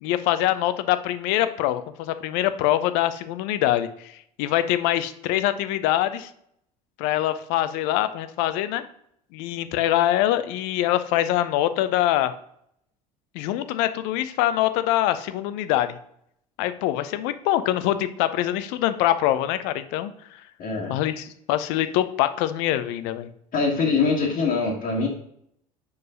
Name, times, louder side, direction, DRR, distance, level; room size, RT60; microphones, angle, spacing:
voice 1, 0.0-4.1 4.4-6.3 7.0-8.8 9.3-12.3 13.3-16.0 16.6-20.1 20.9-23.3, left 13 dB, 65° left, 12 dB, 0.6 m, -24 dB
voice 2, 20.6-21.0 23.5-25.1, left 4 dB, 45° left, -5 dB, 1.5 m, -23 dB
4.8 x 4.8 x 5.0 m, 0.70 s
hypercardioid pair, 70°, 19 cm